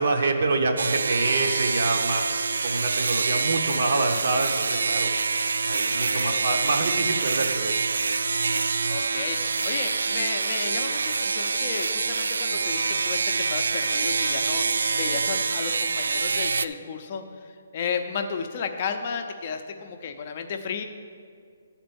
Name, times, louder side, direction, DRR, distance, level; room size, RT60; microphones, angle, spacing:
voice 1, 0.0-5.1 5.7-7.7, right 3 dB, 55° right, 3 dB, 0.7 m, -26 dB
sound 1, 0.8-16.7, right 4 dB, 90° right, 0.3 m, -26 dB
voice 2, 5.9-6.5 8.9-20.9, left 6 dB, 30° left, 6 dB, 0.5 m, -33 dB
11.5 x 4.4 x 6.9 m, 2.2 s
hypercardioid pair, 175°, 0 cm